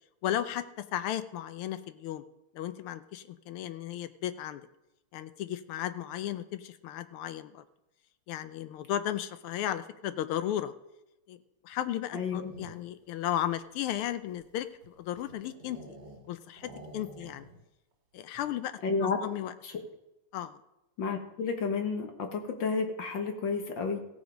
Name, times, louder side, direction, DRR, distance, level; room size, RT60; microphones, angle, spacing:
voice 1, 0.2-2.2 2.5-4.6 5.1-7.6 8.3-10.7 11.3-11.4 11.6-15.8 16.3-17.5 18.1-18.7 19.0-19.5 20.3-20.6, left 11 dB, 85° left, 12 dB, 1.6 m, -35 dB
sound 1, 12.0-13.1 13.7-16.3 16.6-17.6 17.9-18.0 18.3-18.7, right 1 dB, 55° right, 2.9 m, -50 dB
voice 2, 12.1-12.5 18.8-19.2 19.6-19.8 21.0-24.0, left 4 dB, 60° left, 5 dB, 2.0 m, -31 dB
16.0 x 7.2 x 5.2 m, 0.92 s
omnidirectional pair, 2.4 m